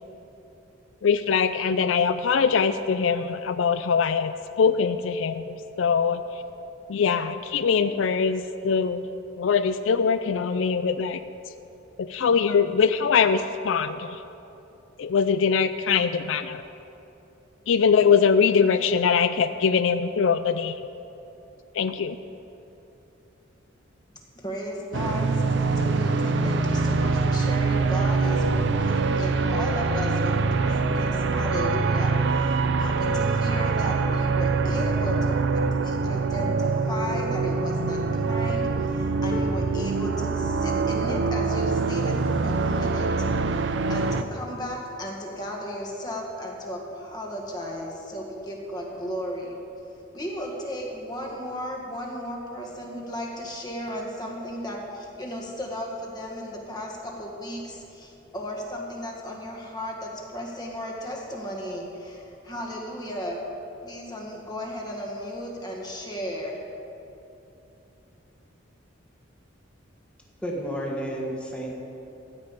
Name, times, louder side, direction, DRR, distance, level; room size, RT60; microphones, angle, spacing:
voice 1, 1.0-6.4 6.9-9.0 9.4-11.2 12.0-14.2 15.0-16.6 17.7-20.9 21.7-22.2, left 6 dB, 75° left, 11 dB, 0.4 m, -22 dB
voice 2, 24.4-43.1 43.4-49.6 50.1-63.4 63.8-66.6, equal, 20° left, -1 dB, 1.7 m, -35 dB
sound 1, 24.9-44.2, right 4 dB, 65° right, 0.5 m, -24 dB
sound 2, 39.3-45.5 46.0-46.2 46.5-47.3 48.3-48.4, equal, 45° left, 0.8 m, -45 dB
voice 3, 70.4-71.7, equal, 5° left, -2 dB, 1.5 m, -31 dB
15.0 x 5.3 x 8.3 m, 2.9 s
head